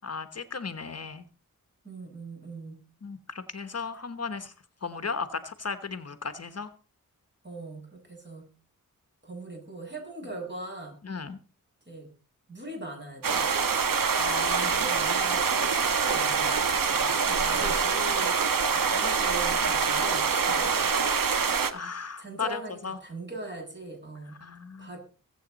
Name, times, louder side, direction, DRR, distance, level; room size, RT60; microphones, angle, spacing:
voice 1, 0.0-1.2 3.0-4.5 4.8-6.7 11.0-11.4 14.2-14.8 17.3-17.7 20.5-20.7 21.7-23.0 24.4-24.9, left 5 dB, 45° left, 10 dB, 1.1 m, -36 dB
voice 2, 1.8-2.8 7.4-8.4 9.2-11.0 11.9-12.1 12.5-13.5 14.6-17.1 17.5-18.4 18.7-21.0 22.2-24.4 24.8-25.0, right 2 dB, 30° right, 0 dB, 6.8 m, -40 dB
sound 1, 13.2-21.7, right 5 dB, 80° right, 1.3 m, -25 dB
22.0 x 8.1 x 4.0 m, 0.37 s
wide cardioid pair, 105°, 33 cm